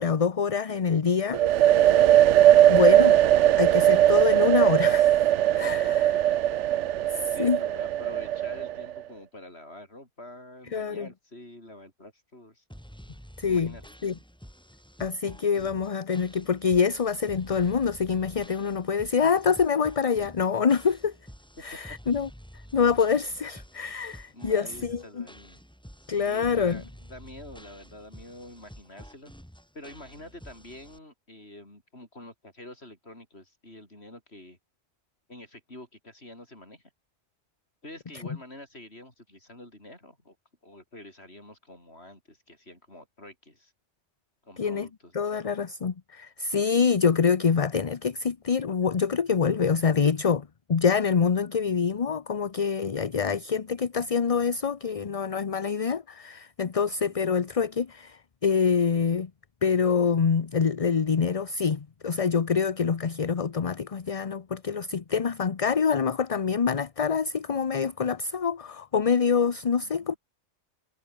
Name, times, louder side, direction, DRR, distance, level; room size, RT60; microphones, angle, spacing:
voice 1, 0.0-1.4 2.6-3.2 3.6-5.2 5.5-6.1 7.1-7.6 10.7-11.1 13.4-13.7 14.0-14.1 15.0-21.1 21.6-25.3 26.1-26.8 38.1-38.3 44.6-44.9 45.1-59.3 59.6-70.1, left 6 dB, 35° left, 0.8 m, -26 dB
sound 1, 1.3-9.0, right 12 dB, 90° right, 1.0 m, -20 dB
voice 2, 7.2-12.6 13.5-13.8 24.3-25.6 26.2-29.3 29.7-34.6 35.3-36.8 37.8-40.4 40.6-43.7 44.4-45.5 57.0-57.2 69.8-70.2, left 1 dB, 65° left, 7.2 m, -47 dB
Welcome to the basment, 12.7-31.0, equal, 5° left, 7.4 m, -49 dB
omnidirectional pair, 1.2 m